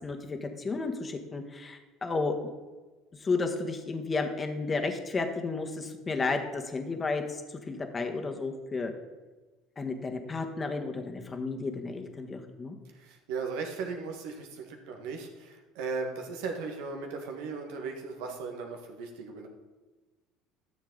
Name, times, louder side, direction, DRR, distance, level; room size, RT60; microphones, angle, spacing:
voice 1, 0.0-2.4 3.2-8.9 9.8-12.8, left 3 dB, 30° left, 4 dB, 1.6 m, -32 dB
voice 2, 12.9-19.5, right 4 dB, 70° right, 3 dB, 1.6 m, -37 dB
13.0 x 7.2 x 4.0 m, 1.3 s
hypercardioid pair, 70°, 0 cm